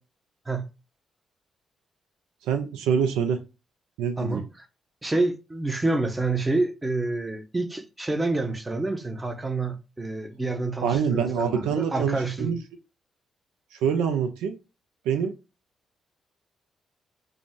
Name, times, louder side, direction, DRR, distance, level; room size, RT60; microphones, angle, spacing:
voice 1, 2.4-3.4 4.0-4.4 10.8-12.6 13.7-14.6 15.1-15.3, right 7 dB, 85° right, 0.3 m, -25 dB
voice 2, 4.2-4.7 5.0-12.5, right 2 dB, 20° right, 0.7 m, -28 dB
2.4 x 2.0 x 3.5 m
hypercardioid pair, 50°, 0 cm